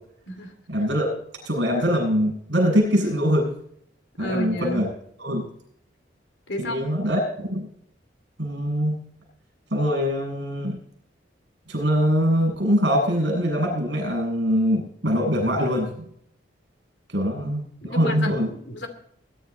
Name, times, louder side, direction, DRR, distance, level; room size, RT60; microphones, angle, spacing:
voice 1, 0.7-1.1 1.4-3.5 4.2-4.9 5.2-5.4 6.6-7.2 7.5-7.7 8.4-9.0 9.7-10.8 11.7-16.1 17.1-18.5, equal, 70° right, 2 dB, 7.4 m, -23 dB
voice 2, 4.2-4.8 6.5-6.8 17.2-17.4 17.8-18.9, left 1 dB, 70° left, 6 dB, 2.7 m, -31 dB
21.0 x 11.0 x 4.0 m, 0.67 s
head